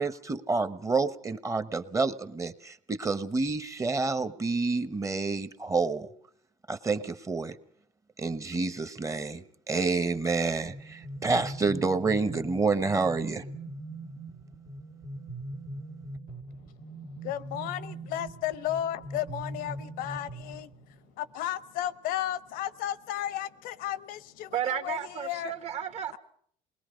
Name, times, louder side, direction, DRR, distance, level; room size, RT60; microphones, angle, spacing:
voice 1, 0.0-6.1 6.7-7.5 8.2-13.5, right 4 dB, 20° right, 11 dB, 1.0 m, -28 dB
sound 1, 10.7-21.0, right 2 dB, 70° right, 2.3 m, -42 dB
voice 2, 17.2-24.5 24.8-25.0 25.2-25.5, left 12 dB, 80° left, 16 dB, 0.9 m, -34 dB
voice 3, 24.5-26.2, right 9 dB, 50° right, 8 dB, 1.6 m, -33 dB
28.0 x 20.5 x 5.1 m, 0.63 s
cardioid pair, 120°, 15 cm